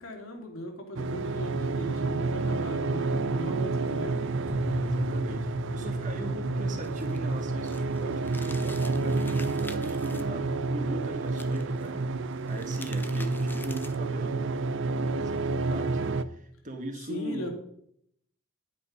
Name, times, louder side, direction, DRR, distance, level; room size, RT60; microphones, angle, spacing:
voice 1, 0.0-4.4 17.0-17.5, equal, 70° left, 2 dB, 2.7 m, -38 dB
sound 1, 1.0-16.2, right 3 dB, 60° right, 0.6 m, -29 dB
sound 2, 4.5-12.6, left 1 dB, 10° right, 1.5 m, -42 dB
voice 2, 4.7-17.5, right 1 dB, 35° right, 3 dB, 1.8 m, -40 dB
sound 3, 6.8-10.2 11.3-11.9 12.4-14.1, left 3 dB, 10° left, 0.6 m, -46 dB
11.0 x 8.8 x 5.3 m, 0.70 s
head